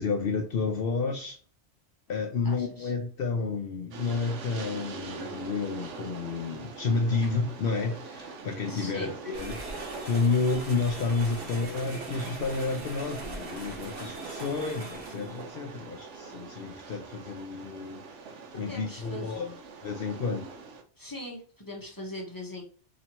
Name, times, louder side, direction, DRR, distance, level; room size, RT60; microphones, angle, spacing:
voice 1, 0.0-1.4 2.1-9.6 10.0-19.5 19.8-20.5, left 4 dB, 60° left, 0.7 m, -30 dB
voice 2, 2.4-2.9 8.7-9.1 18.5-19.5 21.0-22.6, left 1 dB, 20° left, 0.8 m, -41 dB
Train, 3.9-20.8, right 4 dB, 85° right, 1.0 m, -43 dB
sound 1, 9.3-15.4, right 2 dB, 70° right, 1.3 m, -42 dB
4.2 x 3.0 x 2.9 m
omnidirectional pair, 1.2 m